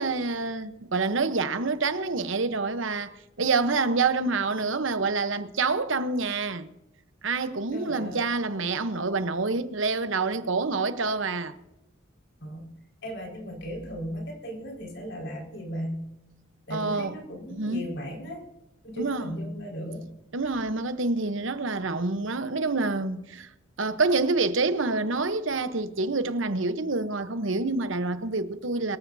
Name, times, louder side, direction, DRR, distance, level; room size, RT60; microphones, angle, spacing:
voice 1, 0.0-6.7 7.2-11.6 16.7-17.1 17.5-17.8 19.0-19.3 20.3-23.5 23.8-29.0, right 3 dB, 70° right, 0.9 m, -27 dB
voice 2, 7.7-8.3 12.4-12.7 13.0-16.0 16.7-18.4 18.8-20.1, equal, 60° left, 5.0 m, -36 dB
23.0 x 14.0 x 2.7 m
head